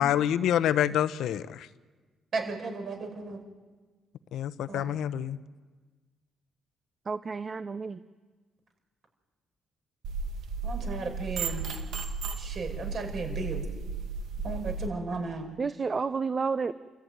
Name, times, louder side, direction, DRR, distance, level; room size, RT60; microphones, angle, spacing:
voice 1, 0.0-1.7 4.3-5.4, left 10 dB, 80° left, 13 dB, 0.8 m, -27 dB
voice 2, 2.3-3.4 4.7-4.9 10.6-11.6 12.4-13.6 14.4-15.5, right 3 dB, 55° right, 4 dB, 5.8 m, -35 dB
voice 3, 7.1-8.0 15.6-16.7, right 5 dB, 35° right, 12 dB, 0.7 m, -30 dB
sound 1, 10.0-14.9, right 4 dB, 80° right, 2.2 m, -34 dB
29.5 x 14.0 x 9.3 m, 1.4 s
cardioid pair, 90°, 0 cm